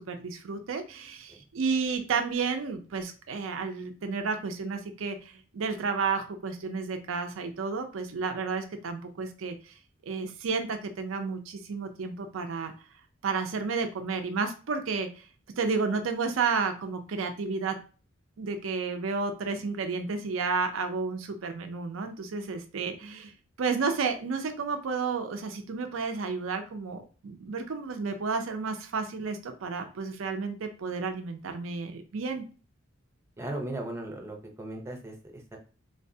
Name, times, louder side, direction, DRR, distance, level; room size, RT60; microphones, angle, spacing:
voice 1, 0.0-9.7 10.0-12.7 13.2-15.3 15.6-17.8 18.4-23.3 23.6-32.4, right 4 dB, 90° right, 6 dB, 0.5 m, -31 dB
voice 2, 33.4-35.6, right 1 dB, 15° right, 2 dB, 0.7 m, -37 dB
3.8 x 2.1 x 2.7 m, 0.36 s
head